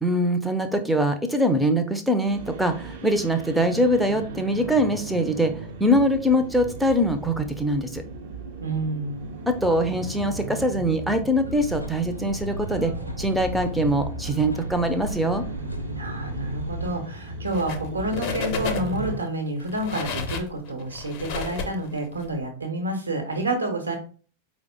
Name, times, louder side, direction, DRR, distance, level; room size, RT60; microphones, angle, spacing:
voice 1, 0.0-5.5 5.8-8.0 9.5-15.4, equal, ahead, 6 dB, 0.4 m, -23 dB
sound 1, 2.2-19.2, right 2 dB, 60° right, 0.6 m, -36 dB
voice 2, 8.6-9.3 16.0-24.0, right 1 dB, 80° right, 3 dB, 0.9 m, -29 dB
sound 2, 11.4-17.0, equal, 85° left, 0.4 m, -36 dB
sound 3, 17.5-17.9 18.1-19.1 19.6-22.3, left 6 dB, 45° left, 0.6 m, -32 dB
4.7 x 2.0 x 3.4 m, 0.40 s
figure-of-eight pair, 90°, 0 cm